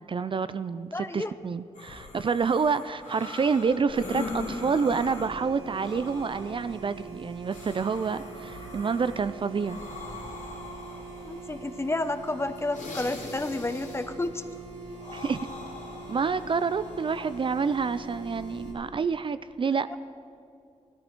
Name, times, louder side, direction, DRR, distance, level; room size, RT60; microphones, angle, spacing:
voice 1, 0.1-9.8 15.1-15.5 16.1-20.0, right 5 dB, 45° right, 13 dB, 0.4 m, -28 dB
voice 2, 0.9-1.3 11.2-14.4 19.9-20.0, left 2 dB, 20° left, 11 dB, 0.7 m, -31 dB
sound 1, 1.7-18.7, left 3 dB, 90° left, 2.7 m, -42 dB
sound 2, 3.9-18.7, right 3 dB, 85° right, 2.4 m, -43 dB
17.0 x 13.0 x 4.5 m, 2.4 s
wide cardioid pair, 90°, 12 cm